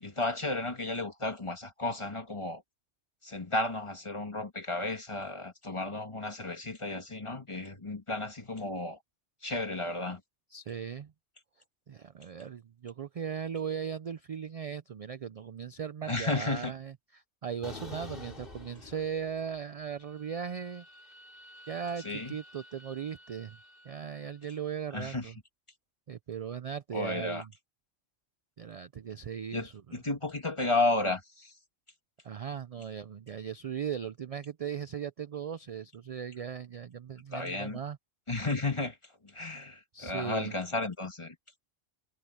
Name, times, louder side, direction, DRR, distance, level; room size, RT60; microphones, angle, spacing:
voice 1, 0.0-2.6 3.2-9.0 9.4-10.2 16.1-16.7 22.0-22.4 24.9-25.3 26.9-27.5 29.5-31.5 37.3-37.8 38.3-39.0 39.2-41.4, left 2 dB, 25° left, 1.8 m, -33 dB
voice 2, 10.5-11.1 11.9-20.8 21.7-23.6 23.8-25.4 26.1-27.5 28.6-30.0 32.2-38.0 39.9-40.5, right 7 dB, 50° right, 0.4 m, -38 dB
sound 1, 17.6-19.6 19.9-24.2, left 2 dB, 50° left, 3.0 m, -49 dB
omnidirectional pair, 1.2 m